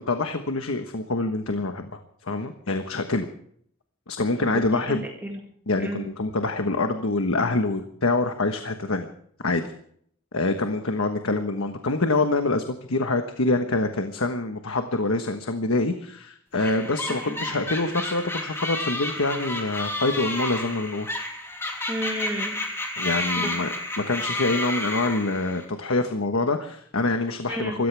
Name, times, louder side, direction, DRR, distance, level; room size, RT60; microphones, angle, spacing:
voice 1, 0.0-3.3 4.1-5.0 5.7-9.1 9.4-9.7 10.3-21.1 22.9-23.7 24.0-27.9, left 2 dB, 85° left, 6 dB, 1.3 m, -25 dB
voice 2, 4.5-5.4 5.8-6.1 17.1-17.4 21.9-22.6 23.4-23.5 27.5-27.8, equal, 10° right, 0 dB, 2.1 m, -32 dB
sound 1, 16.6-25.7, left 1 dB, 10° left, 3.0 m, -31 dB
25.5 x 14.5 x 3.5 m, 0.64 s
head